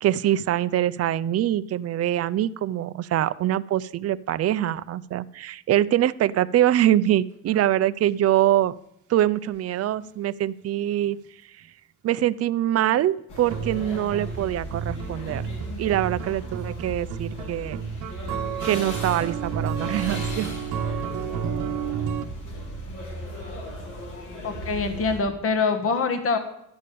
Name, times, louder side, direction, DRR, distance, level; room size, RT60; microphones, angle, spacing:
voice 1, 0.0-8.7 9.1-11.7 12.0-15.4 15.8-17.8 18.6-20.5, right 12 dB, 55° right, 15 dB, 0.5 m, -24 dB
sound 1, 13.3-25.2, equal, 80° left, 3.5 m, -36 dB
sound 2, 13.5-22.2, right 7 dB, 80° right, 0.9 m, -32 dB
voice 2, 24.4-26.4, left 4 dB, 45° left, 6 dB, 1.4 m, -24 dB
12.5 x 5.1 x 8.5 m, 0.78 s
cardioid pair, 90°, 30 cm